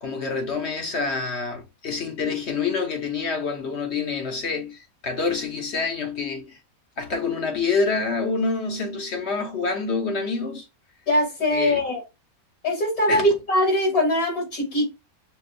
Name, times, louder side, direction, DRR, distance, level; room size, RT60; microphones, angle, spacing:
voice 1, 0.0-6.6 7.0-10.7 11.5-11.8 13.1-13.2, left 4 dB, 50° left, 1.2 m, -27 dB
voice 2, 11.1-12.0 12.6-14.8, left 1 dB, 85° left, 3.1 m, -22 dB
6.7 x 2.4 x 2.5 m
omnidirectional pair, 1.6 m